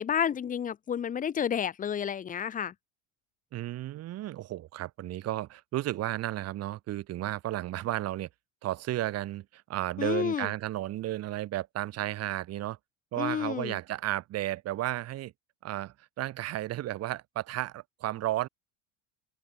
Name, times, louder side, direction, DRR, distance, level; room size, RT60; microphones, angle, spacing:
voice 1, 0.0-2.7 10.0-10.5 13.2-13.8, left 8 dB, 20° left, 1.3 m, -30 dB
voice 2, 3.5-8.3 8.6-12.8 13.1-15.3 15.6-18.5, right 14 dB, 45° right, 5.3 m, -33 dB
open air
cardioid pair, 150°, 36 cm